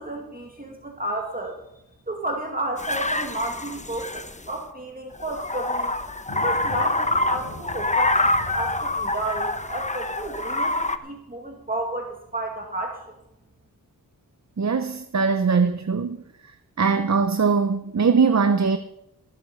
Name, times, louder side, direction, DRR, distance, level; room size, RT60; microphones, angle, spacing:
voice 1, 0.0-5.9 6.3-10.7 11.0-13.0, right 1 dB, 25° right, 2.1 m, -32 dB
sound 1, 2.8-4.5 5.2-11.0, left 2 dB, 20° left, 0.9 m, -26 dB
sound 2, 6.3-10.0, left 2 dB, 55° left, 4.4 m, -40 dB
voice 2, 14.6-16.2 16.8-18.8, right 5 dB, 45° right, 0.8 m, -21 dB
15.0 x 9.5 x 6.5 m
wide cardioid pair, 70°, 38 cm